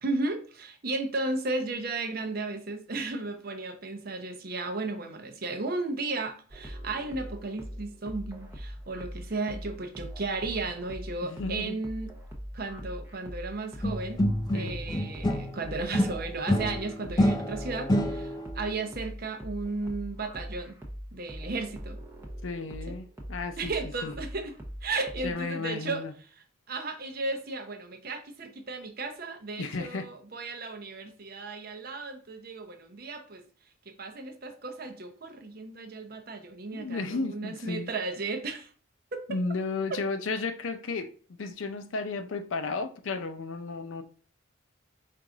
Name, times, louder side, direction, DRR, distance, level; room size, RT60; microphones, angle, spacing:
voice 1, 0.0-12.1 12.5-14.2 14.5-20.8 21.1-22.0 23.6-24.5 24.8-26.0 26.7-33.4 34.0-38.7 39.1-39.4 39.9-40.0, right 3 dB, 50° right, 0.6 m, -34 dB
sound 1, 6.5-25.3, equal, 10° right, 0.7 m, -42 dB
voice 2, 11.2-11.7 14.5-14.8 22.4-23.7 24.0-24.1 25.2-26.1 29.6-30.1 36.7-37.9 39.3-44.0, left 3 dB, 75° left, 0.5 m, -33 dB
sound 2, 13.8-15.6 15.9-18.5, equal, 20° left, 0.4 m, -27 dB
4.6 x 2.5 x 3.8 m
head